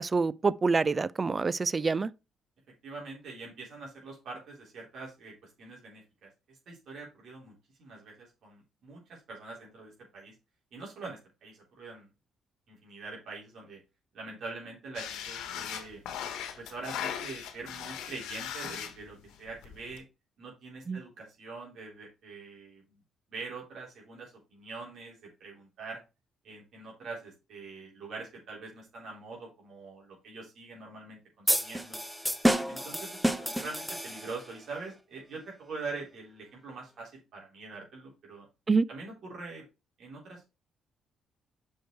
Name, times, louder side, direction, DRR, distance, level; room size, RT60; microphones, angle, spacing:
voice 1, 0.0-2.1 20.9-21.0 38.7-38.9, right 4 dB, 30° right, 0.4 m, -26 dB
voice 2, 2.8-7.5 7.8-10.3 10.7-12.1 12.7-13.8 14.1-16.0 16.6-20.0 20.4-23.0 23.3-26.0 26.4-32.0 32.7-38.5 38.9-39.6 40.0-40.5, right 3 dB, 65° right, 3.7 m, -44 dB
sound 1, 15.0-20.0, left 9 dB, 90° left, 1.1 m, -39 dB
sound 2, 31.5-34.5, equal, ahead, 0.9 m, -29 dB
6.3 x 5.1 x 4.5 m
cardioid pair, 95°, 0 cm